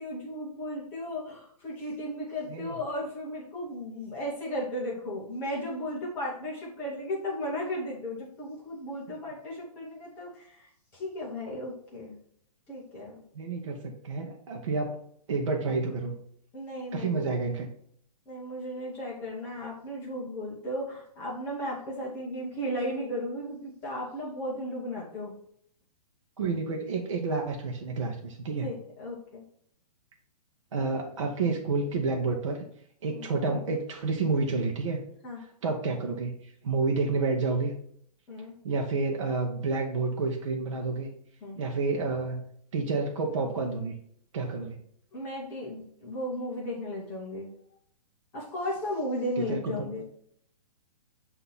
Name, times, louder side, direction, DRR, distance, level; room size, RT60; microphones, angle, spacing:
voice 1, 0.0-10.7 10.9-12.2 12.7-13.1 16.5-17.2 18.3-25.3 28.6-29.4 33.1-33.3 35.2-35.4 38.3-38.5 41.4-41.6 45.1-47.5 48.3-50.0, left 1 dB, 10° left, -4 dB, 0.7 m, -35 dB
voice 2, 13.3-15.0 15.3-16.2 16.9-17.7 26.4-28.7 30.7-32.6 33.0-35.0 35.6-36.3 36.6-37.7 38.6-41.1 41.6-42.4 42.7-44.0 44.3-44.8 49.4-50.0, right 3 dB, 45° right, 1 dB, 0.8 m, -29 dB
8.0 x 2.7 x 5.5 m, 0.66 s
hypercardioid pair, 180°, 21 cm